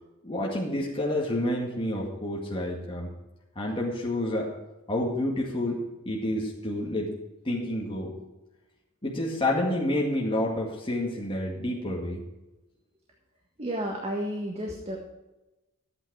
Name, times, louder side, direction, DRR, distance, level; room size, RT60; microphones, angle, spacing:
voice 1, 0.2-3.1 3.6-4.5 4.9-7.2 7.4-8.2 9.0-12.2, left 1 dB, 25° left, -3 dB, 2.1 m, -29 dB
voice 2, 13.6-15.0, right 1 dB, 30° right, -1 dB, 1.7 m, -32 dB
13.5 x 9.0 x 4.8 m, 1.0 s
head